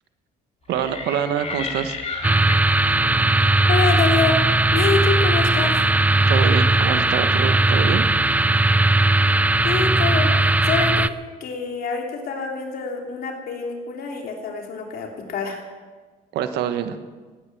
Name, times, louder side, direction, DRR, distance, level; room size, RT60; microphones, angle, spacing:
sound 1, 0.7-5.5, left 4 dB, 40° left, 2.9 m, -35 dB
voice 1, 0.7-2.0 6.3-8.1 16.3-17.0, right 9 dB, 80° right, 9 dB, 1.4 m, -25 dB
sound 2, 2.2-11.1, right 2 dB, 10° right, 0.5 m, -18 dB
voice 2, 3.7-4.4 4.7-5.8 9.6-11.1 11.4-15.6, left 5 dB, 65° left, 1 dB, 3.1 m, -26 dB
17.5 x 10.5 x 7.5 m, 1.4 s
cardioid pair, 110°, 17 cm